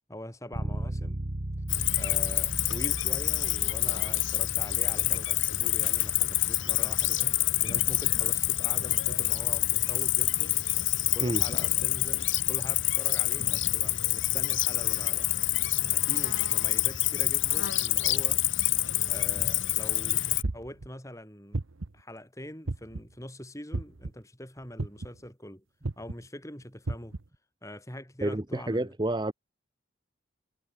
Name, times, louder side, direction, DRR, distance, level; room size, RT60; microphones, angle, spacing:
voice 1, 0.1-1.2 1.9-10.7 11.1-15.3 15.9-18.5 19.1-21.6 21.9-25.6 26.0-27.1 27.6-28.9, left 1 dB, 15° left, 4.6 m, -43 dB
Bass guitar, 0.5-10.2, right 1 dB, 40° right, 1.4 m, -39 dB
Cricket, 1.7-20.4, left 15 dB, 70° left, 2.8 m, -27 dB
sound 1, 20.4-20.9 21.5-22.0 22.7-23.1 23.7-24.1 24.8-25.2 25.8-26.2 26.9-27.2, right 2 dB, 80° right, 1.0 m, -32 dB
voice 2, 28.2-29.3, right 1 dB, 20° right, 0.7 m, -29 dB
head